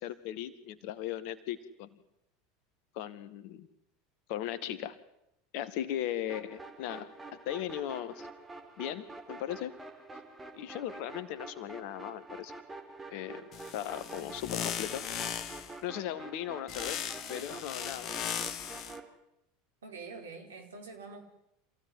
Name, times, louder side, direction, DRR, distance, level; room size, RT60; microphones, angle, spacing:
voice 1, 0.0-2.0 2.9-3.7 4.3-5.0 5.5-8.3 8.8-9.7 10.5-12.5 13.1-13.5 13.7-15.1 15.8-17.0 17.3-18.1, left 11 dB, 55° left, 13 dB, 2.0 m, -37 dB
sound 1, 6.3-19.1, right 3 dB, 20° right, 4.6 m, -47 dB
sound 2, 13.5-15.8 16.7-19.0, left 9 dB, 40° left, 1.7 m, -38 dB
voice 2, 19.8-21.2, right 4 dB, 75° right, 4 dB, 4.6 m, -45 dB
27.0 x 16.0 x 9.5 m, 0.85 s
figure-of-eight pair, 80°, 0 cm